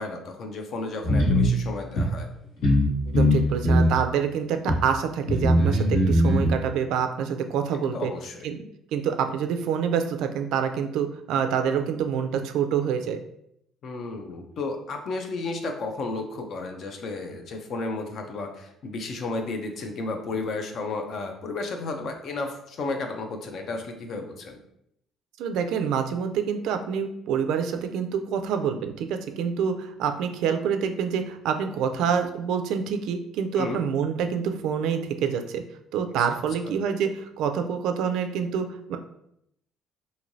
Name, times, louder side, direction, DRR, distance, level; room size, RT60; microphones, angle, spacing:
voice 1, 0.0-2.3 7.9-8.5 13.8-24.6 33.6-33.8, left 3 dB, 45° left, 5 dB, 0.4 m, -33 dB
sound 1, 1.0-1.5 2.0-2.1 2.6-2.9 3.1-3.9 4.7-4.8 5.3-6.5, equal, 80° left, 1.3 m, -20 dB
voice 2, 3.1-8.1 8.4-8.7 8.9-13.2 25.4-35.6 35.9-39.0, right 7 dB, 75° right, 7 dB, 0.3 m, -27 dB
3.1 x 2.6 x 2.6 m, 0.75 s
cardioid pair, 155°, 0 cm